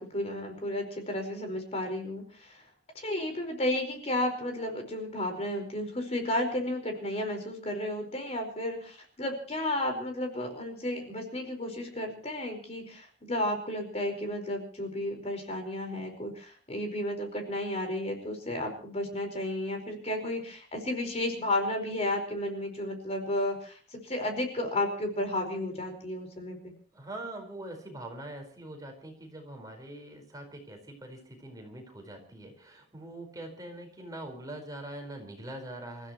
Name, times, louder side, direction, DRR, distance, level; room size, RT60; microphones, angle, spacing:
voice 1, 0.0-2.6 2.9-26.7, left 1 dB, 35° left, 5 dB, 4.8 m, -33 dB
voice 2, 26.9-36.1, right 1 dB, 20° right, 2 dB, 4.8 m, -43 dB
29.0 x 15.5 x 3.1 m, 0.42 s
head